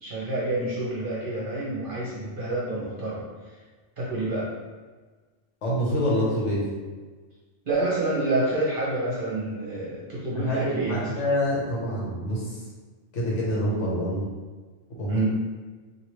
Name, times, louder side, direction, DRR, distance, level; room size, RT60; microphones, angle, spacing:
voice 1, 0.0-3.6 4.0-4.5 7.6-11.1 15.1-15.3, right 2 dB, 45° right, -7 dB, 1.0 m, -28 dB
voice 2, 5.6-6.7 10.4-12.6 13.1-14.3 15.0-15.3, equal, 70° left, -5 dB, 1.2 m, -26 dB
3.0 x 2.7 x 3.0 m, 1.4 s
omnidirectional pair, 1.3 m